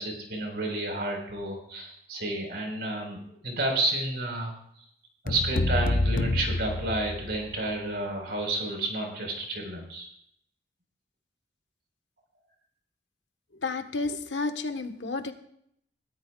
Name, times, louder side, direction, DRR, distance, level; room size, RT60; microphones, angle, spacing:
voice 1, 0.0-4.5 5.2-10.1, right 2 dB, 60° right, 1 dB, 4.6 m, -31 dB
sound 1, 5.3-7.5, left 2 dB, 50° left, 0.7 m, -27 dB
voice 2, 13.5-15.3, left 3 dB, 85° left, 7 dB, 1.3 m, -31 dB
21.5 x 14.0 x 2.4 m, 0.70 s
head